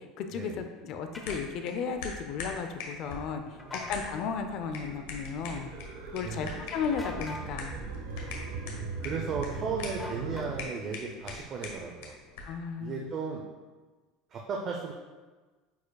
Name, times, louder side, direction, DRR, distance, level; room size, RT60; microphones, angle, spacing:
voice 1, 0.0-5.7 6.1-7.8 12.4-13.1, left 6 dB, 50° left, 7 dB, 0.5 m, -35 dB
sound 1, 1.1-1.4 3.6-4.0 6.9-7.5 10.0-10.8, left 2 dB, 10° left, 0.8 m, -42 dB
sound 2, 1.2-12.6, left 3 dB, 80° left, 1.3 m, -43 dB
voice 2, 3.5-3.8 6.2-6.6 8.1-8.5 9.0-12.2 12.8-13.4 14.3-14.9, right 5 dB, 35° right, 0 dB, 0.6 m, -36 dB
sound 3, 3.7-10.6, right 4 dB, 70° right, 1.0 m, -40 dB
9.1 x 4.9 x 2.3 m, 1.3 s
supercardioid pair, 145°, 0 cm